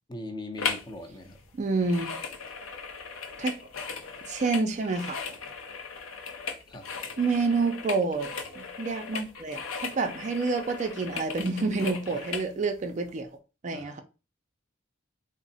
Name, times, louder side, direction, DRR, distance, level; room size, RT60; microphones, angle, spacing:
voice 1, 0.1-1.4 6.7-6.9 12.1-12.2 13.7-14.0, left 2 dB, 20° left, 0.5 m, -40 dB
sound 1, 0.6-0.9 1.2-12.5 13.0-13.1, left 5 dB, 85° left, 0.6 m, -37 dB
voice 2, 1.6-2.2 3.4-3.6 4.2-5.3 7.2-13.3 13.6-14.0, right 3 dB, 35° right, 0.4 m, -28 dB
3.6 x 2.0 x 3.9 m
head